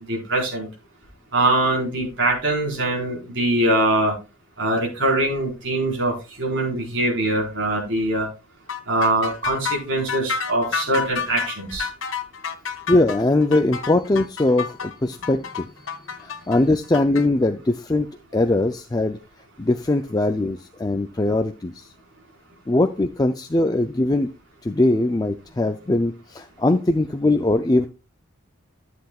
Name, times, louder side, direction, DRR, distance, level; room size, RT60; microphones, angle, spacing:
voice 1, 0.1-0.7 1.3-4.1 4.6-8.3 8.9-11.9, right 1 dB, 65° right, -1 dB, 4.5 m, -22 dB
sound 1, 8.7-17.2, left 6 dB, 75° left, 1.0 m, -29 dB
voice 2, 12.9-15.7 16.2-18.1 18.3-19.2 19.6-21.9 22.7-24.3 24.6-27.9, left 2 dB, 20° left, 6 dB, 0.4 m, -21 dB
13.5 x 7.9 x 2.4 m, 0.29 s
head